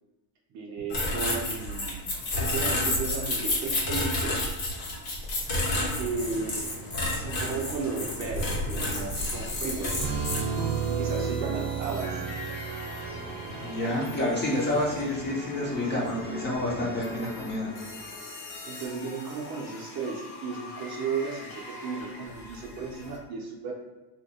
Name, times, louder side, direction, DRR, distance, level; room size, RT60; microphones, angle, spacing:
voice 1, 0.5-2.0 2.3-4.5 5.9-6.7 7.2-10.1 11.0-12.2 16.0-16.1 18.6-23.7, right 4 dB, 40° right, -1 dB, 0.6 m, -34 dB
sound 1, 0.9-10.4, left 2 dB, 70° left, 1.4 m, -30 dB
sound 2, 9.1-23.2, left 2 dB, 55° left, 1.0 m, -41 dB
Piano, 10.0-15.6, right 6 dB, 85° right, 0.6 m, -33 dB
voice 2, 13.5-17.7, left 1 dB, 20° left, -4 dB, 0.6 m, -29 dB
2.8 x 2.1 x 4.1 m, 1.1 s
cardioid pair, 145°, 48 cm